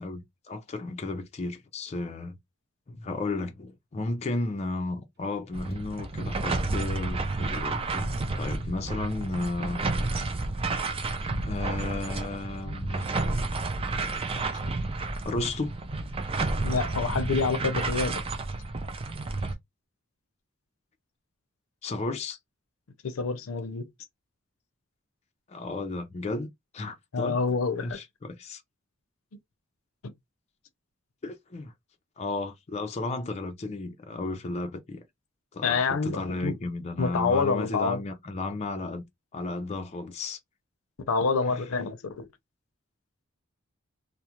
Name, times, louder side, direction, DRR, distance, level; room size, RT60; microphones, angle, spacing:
voice 1, 0.0-2.4 2.9-8.1 8.4-9.8 11.4-13.1 15.2-15.7 21.8-22.4 25.5-26.5 26.7-27.4 27.8-28.6 31.2-31.7 32.2-35.0 35.5-39.0 39.3-40.4 41.5-41.7, left 2 dB, 30° left, 0.4 m, -33 dB
sound 1, 5.5-19.5, right 3 dB, 30° right, 0.4 m, -31 dB
Car / Engine starting, 5.7-5.8 6.1-11.3, equal, 50° right, 0.9 m, -45 dB
voice 2, 16.6-18.2 23.0-23.9 27.1-28.0 35.6-36.6 37.0-38.0 41.1-42.3, left 4 dB, 85° left, 0.5 m, -27 dB
2.3 x 2.0 x 2.8 m
head